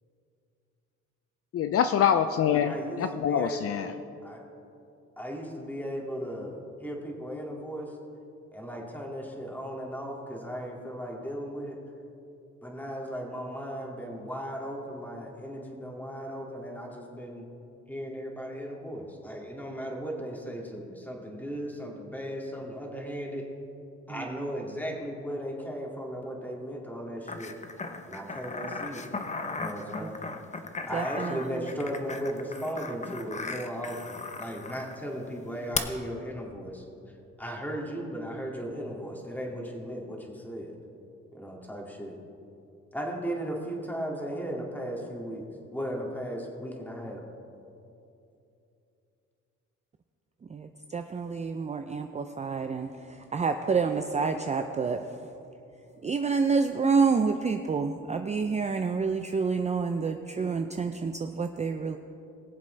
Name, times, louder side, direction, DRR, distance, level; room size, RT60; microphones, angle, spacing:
voice 1, 1.5-3.9, left 8 dB, 50° left, 9 dB, 0.4 m, -25 dB
voice 2, 2.5-3.6 4.2-4.4 5.2-7.9 8.5-11.8 12.6-17.5 17.9-23.4 24.1-27.5 28.0-29.0 29.6-30.2 30.9-36.8 37.4-40.7 41.3-42.2 42.9-45.4 45.7-47.2, equal, 5° left, -2 dB, 2.2 m, -36 dB
voice 3, 24.1-24.5 30.9-31.7 50.5-55.3 56.0-62.0, right 5 dB, 25° right, 6 dB, 0.4 m, -28 dB
sound 1, 27.3-35.0 35.7-35.8, left 4 dB, 25° left, 0.8 m, -37 dB
21.5 x 7.4 x 3.3 m, 2.8 s
cardioid pair, 90°, 30 cm